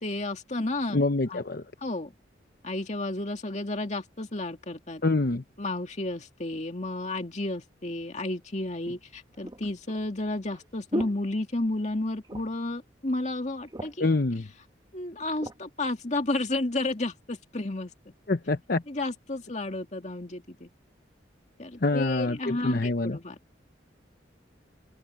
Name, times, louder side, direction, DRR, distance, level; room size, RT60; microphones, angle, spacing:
voice 1, 0.0-1.0 1.3-1.4 1.8-2.1 2.6-5.0 5.6-14.1 14.9-18.1 18.9-20.7 21.6-23.4, left 2 dB, 40° left, 2.3 m, -32 dB
voice 2, 0.9-1.6 5.0-5.4 14.0-14.5 18.3-18.8 21.8-23.2, left 2 dB, 55° left, 0.8 m, -26 dB
sound 1, 7.9-8.0 8.8-11.9 12.2-12.7 13.1-13.2 13.5-14.2 14.9-15.6 16.2-16.4, equal, 20° right, 1.3 m, -38 dB
open air
head